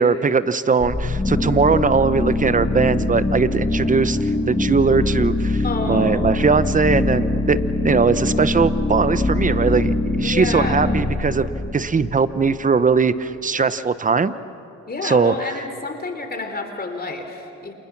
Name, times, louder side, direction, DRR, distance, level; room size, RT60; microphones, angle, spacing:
voice 1, 0.0-14.3 15.0-15.5, right 5 dB, 25° right, 14 dB, 1.0 m, -20 dB
sound 1, 0.8-12.6, left 2 dB, 15° left, 2.1 m, -23 dB
voice 2, 5.6-6.6 10.2-10.9 14.9-17.7, left 3 dB, 30° left, 5 dB, 3.6 m, -29 dB
29.0 x 28.0 x 6.1 m, 3.0 s
cardioid pair, 90°, 30 cm